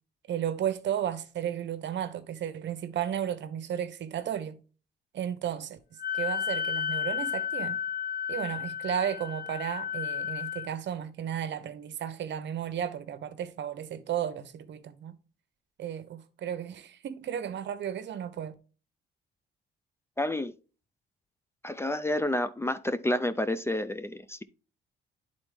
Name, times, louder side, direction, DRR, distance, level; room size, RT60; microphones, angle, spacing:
voice 1, 0.3-4.6 5.1-5.8 6.1-7.8 8.3-15.1 15.8-18.5, right 9 dB, 65° right, 0.9 m, -34 dB
Wind instrument woodwind instrument, 6.0-10.7, left 8 dB, 45° left, 1.9 m, -32 dB
voice 2, 20.2-20.5 21.6-24.4, left 1 dB, 15° left, 0.4 m, -29 dB
9.7 x 4.1 x 3.4 m
cardioid pair, 90°, 20 cm